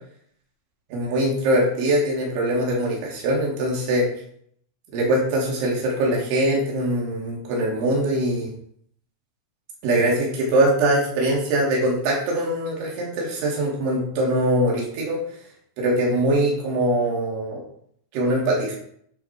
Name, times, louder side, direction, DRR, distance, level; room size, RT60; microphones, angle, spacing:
voice 1, 0.9-4.1 4.9-8.5 9.8-15.2 15.8-17.6 18.1-18.7, right 1 dB, 75° right, -3 dB, 5.6 m, -22 dB
10.0 x 10.0 x 4.6 m, 0.66 s
omnidirectional pair, 5.5 m